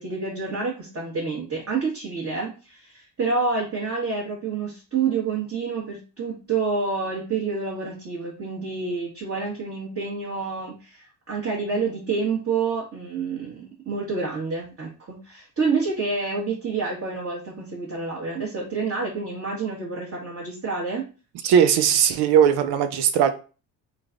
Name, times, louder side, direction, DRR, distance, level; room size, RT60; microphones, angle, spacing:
voice 1, 0.0-21.0, right 4 dB, 30° right, -3 dB, 1.4 m, -28 dB
voice 2, 21.4-23.3, right 8 dB, 55° right, 8 dB, 0.7 m, -18 dB
3.1 x 2.3 x 3.7 m, 0.35 s
hypercardioid pair, 65°, 49 cm